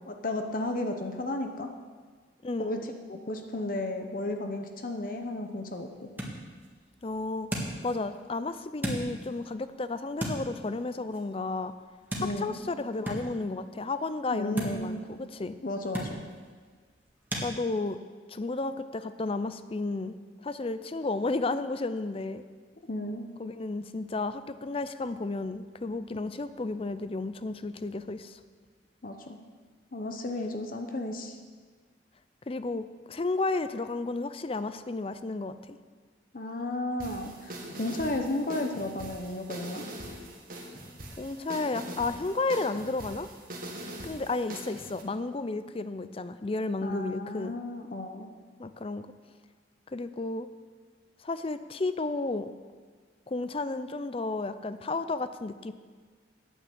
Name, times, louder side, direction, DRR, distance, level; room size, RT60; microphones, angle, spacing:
voice 1, 0.1-1.7 2.6-6.1 12.2-12.6 14.3-15.0 15.6-16.2 22.9-23.3 29.0-29.4 29.9-31.4 36.3-39.8 46.8-48.3, left 1 dB, 50° left, 4 dB, 0.8 m, -33 dB
voice 2, 2.4-2.8 7.0-11.7 12.2-15.6 17.4-18.0 18.3-20.1 20.4-22.4 23.4-28.4 32.5-35.8 41.2-43.3 44.0-47.6 48.6-49.1 49.9-50.5 51.2-52.5 53.3-55.7, left 3 dB, 30° left, 12 dB, 0.5 m, -32 dB
sound 1, 5.0-17.5, right 1 dB, 10° right, 1.7 m, -40 dB
sound 2, 37.0-45.0, right 1 dB, 50° right, 1.7 m, -42 dB
9.1 x 8.8 x 7.6 m, 1.5 s
head